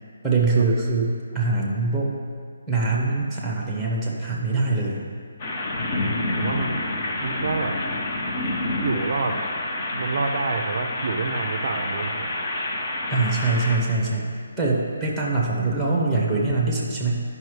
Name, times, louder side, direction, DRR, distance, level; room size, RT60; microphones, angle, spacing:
voice 1, 0.2-2.1 2.7-5.0 13.1-17.2, right 3 dB, ahead, -3 dB, 0.9 m, -23 dB
voice 2, 2.9-3.2 6.4-6.8 7.2-7.8 8.8-9.4 9.9-12.4, right 4 dB, 45° right, 4 dB, 0.5 m, -28 dB
sound 1, 5.4-13.8, left 2 dB, 30° left, 0.7 m, -28 dB
10.5 x 5.4 x 3.2 m, 2.1 s
hypercardioid pair, 170°, 0 cm